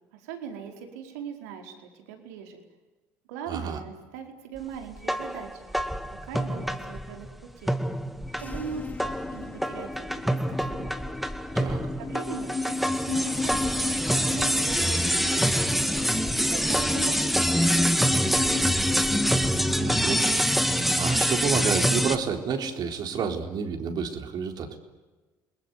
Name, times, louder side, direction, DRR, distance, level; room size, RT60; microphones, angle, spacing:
voice 1, 0.1-2.6 3.3-5.7 6.2-7.3 7.6-7.8 8.4-11.0 12.0-15.9 16.5-18.9, right 7 dB, 85° right, 4 dB, 4.7 m, -40 dB
voice 2, 3.5-3.8 11.5-11.8 19.8-24.8, right 6 dB, 55° right, 5 dB, 4.1 m, -30 dB
sound 1, 5.0-7.3 7.7-22.2, equal, ahead, 2.2 m, -26 dB
sound 2, 8.3-23.8, left 3 dB, 20° left, 1.1 m, -34 dB
29.5 x 20.5 x 9.7 m, 1.2 s
hypercardioid pair, 70°, 8 cm